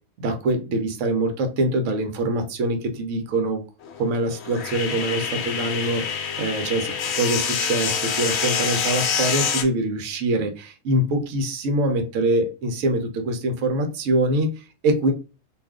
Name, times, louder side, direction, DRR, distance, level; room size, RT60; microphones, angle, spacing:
voice 1, 0.2-3.6 4.0-15.1, right 1 dB, 70° right, 6 dB, 1.0 m, -24 dB
sound 1, 3.9-9.6, left 6 dB, 65° left, 0.7 m, -26 dB
2.5 x 2.4 x 3.5 m, 0.31 s
omnidirectional pair, 1.4 m